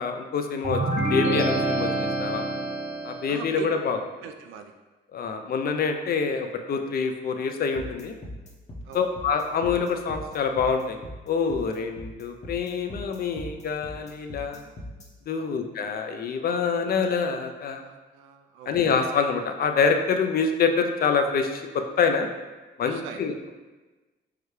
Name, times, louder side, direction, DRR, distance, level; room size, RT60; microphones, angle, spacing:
voice 1, 0.0-2.4 3.0-4.0 5.1-8.1 8.9-11.0 11.3-14.6 15.3-17.8 18.7-22.3 22.8-23.5, left 5 dB, 50° left, 6 dB, 0.4 m, -26 dB
sound 1, 0.6-3.4, right 2 dB, 35° right, 0.8 m, -26 dB
voice 2, 3.3-3.7 4.2-4.7 8.8-9.1 15.4-15.6 17.8-18.7 22.8-23.2, right 6 dB, 85° right, 6 dB, 0.4 m, -40 dB
sound 2, 7.8-15.1, left 1 dB, 35° left, 0.8 m, -40 dB
4.7 x 2.3 x 3.1 m, 1.2 s
cardioid pair, 90°, 20 cm